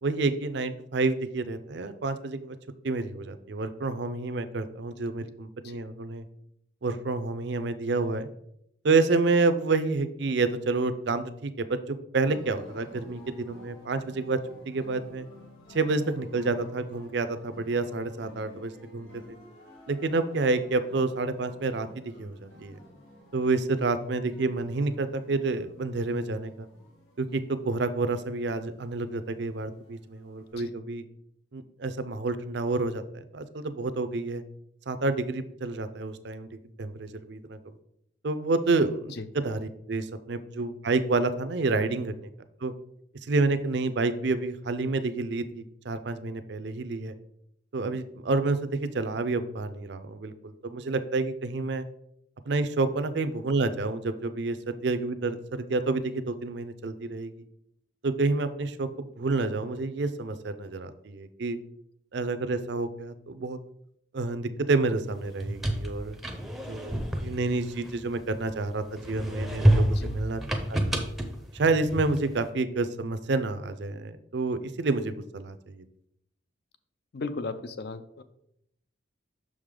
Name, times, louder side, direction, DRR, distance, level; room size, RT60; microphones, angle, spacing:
voice 1, 0.0-2.6 2.8-6.2 6.8-8.3 8.8-14.4 14.7-15.3 15.7-19.1 19.9-22.8 23.3-26.7 27.2-31.0 31.5-34.4 34.9-36.5 36.8-37.6 38.2-42.3 42.6-42.7 43.3-47.1 47.7-51.8 52.5-57.3 58.0-61.6 62.1-63.6 64.1-66.1 66.7-67.0 67.2-70.4 70.7-70.8 71.5-75.8, right 3 dB, 60° right, 11 dB, 0.5 m, -29 dB
sound 1, 12.2-30.5, left 1 dB, 80° left, 2.5 m, -53 dB
sound 2, 65.2-68.5 69.0-72.4, right 1 dB, ahead, 0.6 m, -28 dB
voice 2, 77.1-78.2, left 3 dB, 55° left, 12 dB, 0.4 m, -36 dB
6.3 x 4.9 x 3.7 m, 0.75 s
head